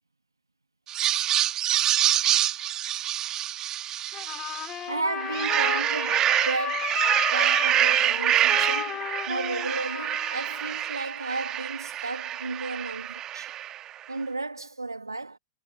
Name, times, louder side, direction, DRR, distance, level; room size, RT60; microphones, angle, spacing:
sound 1, 0.9-4.8 5.2-13.9, right 12 dB, 30° right, 1.8 m, -26 dB
Trumpet, 4.1-10.9, left 11 dB, 25° left, 5.1 m, -34 dB
voice 1, 4.9-13.5 14.1-15.4, right 3 dB, 85° right, 1.7 m, -34 dB
figure-of-eight pair, 95°, 2 cm